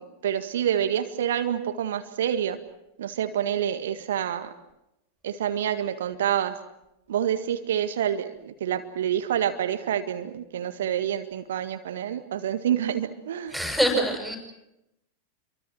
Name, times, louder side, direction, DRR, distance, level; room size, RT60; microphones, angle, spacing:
voice 1, 0.0-2.6 3.0-4.5 5.2-6.6 7.1-13.6, right 10 dB, 60° right, 9 dB, 1.7 m, -27 dB
voice 2, 13.5-14.4, equal, 5° left, 1 dB, 7.7 m, -24 dB
28.0 x 24.0 x 6.4 m, 0.86 s
figure-of-eight pair, 90°, 0 cm